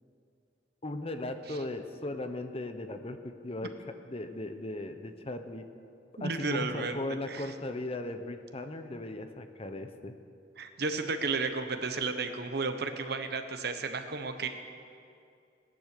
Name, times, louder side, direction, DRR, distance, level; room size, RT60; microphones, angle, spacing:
voice 1, 0.8-3.7 4.1-5.6 6.2-10.1, left 2 dB, 35° left, 8 dB, 0.8 m, -37 dB
voice 2, 6.2-7.0 7.3-7.5 10.6-14.5, right 4 dB, 60° right, 7 dB, 1.0 m, -33 dB
17.5 x 10.5 x 6.7 m, 2.5 s
head